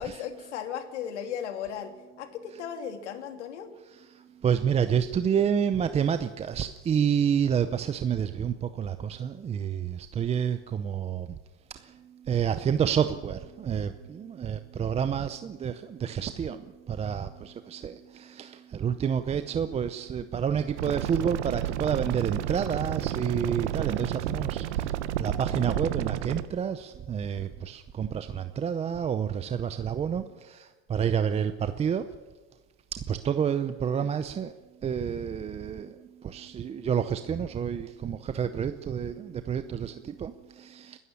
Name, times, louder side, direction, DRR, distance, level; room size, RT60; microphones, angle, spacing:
voice 1, 0.0-3.7, left 8 dB, 90° left, 7 dB, 2.9 m, -36 dB
voice 2, 4.1-11.3 11.7-32.1 32.9-34.5 34.8-41.0, right 8 dB, 20° right, 10 dB, 0.6 m, -29 dB
sound 1, 20.8-26.5, right 12 dB, 85° right, 1.2 m, -31 dB
21.0 x 13.0 x 9.9 m, 1.3 s
supercardioid pair, 135°, 34 cm